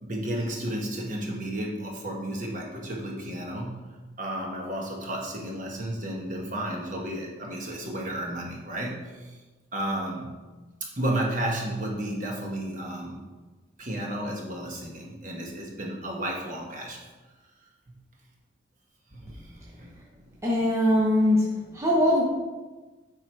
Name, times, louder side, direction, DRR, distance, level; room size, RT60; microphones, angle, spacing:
voice 1, 0.0-9.4 9.7-10.3 10.8-13.2 13.8-17.0 19.1-19.9, right 1 dB, 40° right, -1 dB, 1.1 m, -32 dB
voice 2, 20.4-21.5 21.7-22.2, left 1 dB, 15° right, -5 dB, 0.8 m, -21 dB
7.6 x 3.7 x 4.5 m, 1.2 s
head